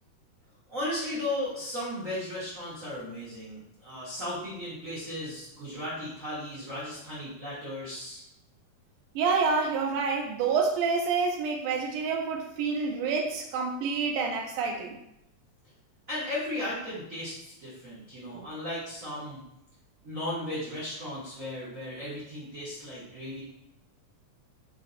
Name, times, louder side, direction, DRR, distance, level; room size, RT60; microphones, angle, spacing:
voice 1, 0.7-8.2 16.1-19.4 20.0-23.4, left 1 dB, 60° right, -11 dB, 0.8 m, -36 dB
voice 2, 9.2-15.0 18.4-18.5, right 5 dB, 80° right, 1 dB, 2.1 m, -28 dB
5.6 x 2.8 x 2.6 m, 0.81 s
omnidirectional pair, 3.8 m